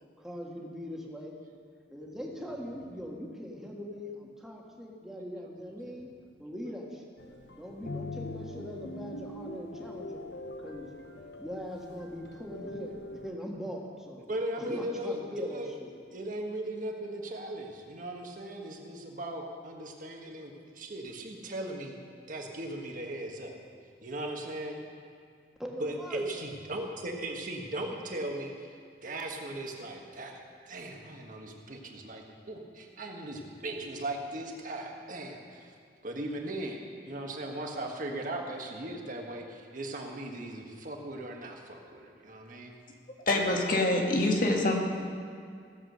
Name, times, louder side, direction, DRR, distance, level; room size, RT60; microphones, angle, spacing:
voice 1, 0.2-1.3 1.9-6.1 6.4-7.0 7.5-10.2 10.6-10.9 11.4-14.2 14.6-15.9 25.6-26.3 44.5-44.8, equal, 5° right, -2 dB, 1.5 m, -41 dB
sound 1, 7.2-13.3, left 2 dB, 70° left, 0.8 m, -43 dB
voice 2, 14.3-15.7 16.1-22.0 22.3-23.6 24.0-24.8 25.8-28.7 29.0-35.7 36.0-42.7, right 1 dB, 50° right, 1 dB, 1.5 m, -38 dB
voice 3, 43.3-44.8, left 2 dB, 50° left, 1 dB, 1.7 m, -25 dB
16.0 x 7.5 x 6.5 m, 2.3 s
head